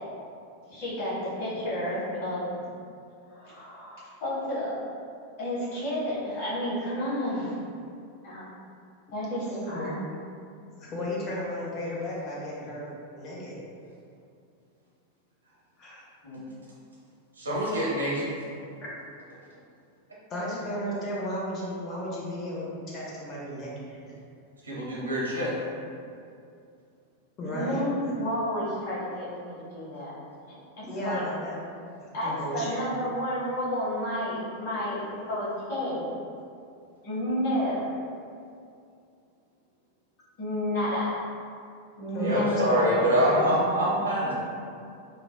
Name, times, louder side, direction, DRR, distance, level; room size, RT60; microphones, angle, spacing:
voice 1, 0.7-2.4 3.3-4.8 5.4-7.6 8.2-8.5 9.1-9.9 16.2-16.5 27.5-30.1 30.8-31.2 32.1-36.1 37.0-37.9 40.4-41.2 42.0-43.0, equal, 50° left, -10 dB, 1.4 m, -31 dB
voice 2, 9.5-9.9 10.8-13.6 15.8-16.1 18.8-18.9 20.3-24.1 27.4-28.1 30.8-31.5 32.0-32.9 42.1-42.5 43.0-43.5, left 1 dB, 30° left, -5 dB, 0.7 m, -34 dB
voice 3, 17.4-18.3 24.6-25.5 42.2-44.3, equal, 75° right, -6 dB, 0.7 m, -25 dB
3.1 x 2.5 x 2.3 m, 2.4 s
figure-of-eight pair, 90°, 0 cm